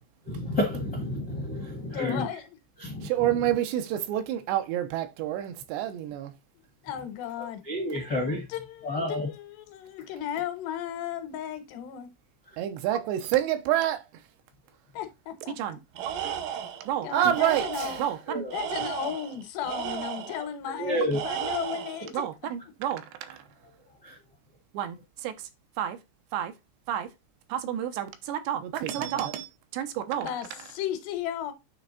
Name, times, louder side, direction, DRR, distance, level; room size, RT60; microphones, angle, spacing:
voice 1, 0.3-2.2 2.8-3.1 7.7-8.4 8.8-9.3 18.3-18.5 20.7-21.2 24.0-24.2, left 1 dB, 55° left, 1.1 m, -30 dB
voice 2, 1.9-2.6 6.8-7.6 7.9-8.8 9.1-12.1 14.9-15.8 17.0-18.1 18.5-22.3 30.1-31.5, left 10 dB, 75° left, 3.0 m, -35 dB
voice 3, 3.0-6.3 12.6-14.0 15.6-15.8 16.9-18.4 22.1-23.4 24.7-25.3 25.8-26.0 26.3-26.5 26.9-27.1 27.5-30.3, right 11 dB, 90° right, 3.1 m, -29 dB
Tools, 16.0-16.9 17.3-18.1 18.5-20.4 21.1-22.0, right 9 dB, 75° right, 2.0 m, -34 dB
9.3 x 3.5 x 4.1 m
omnidirectional pair, 5.0 m